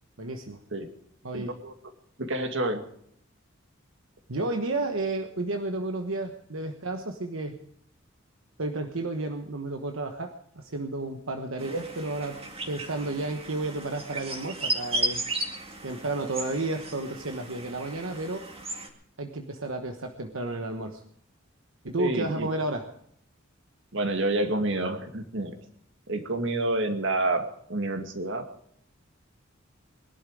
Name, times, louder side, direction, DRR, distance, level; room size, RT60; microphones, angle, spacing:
voice 1, 0.2-0.6 1.2-1.6 4.3-7.6 8.6-12.4 12.7-15.2 15.8-18.4 19.2-21.0 21.8-22.9, right 2 dB, 85° right, 5 dB, 1.3 m, -32 dB
voice 2, 1.3-1.7 2.2-2.8 22.0-22.5 23.9-25.5 26.1-27.4 27.7-28.4, right 2 dB, 65° right, 6 dB, 2.2 m, -28 dB
sound 1, 11.6-18.9, right 1 dB, 30° right, 2.3 m, -35 dB
21.5 x 11.5 x 4.9 m, 0.68 s
head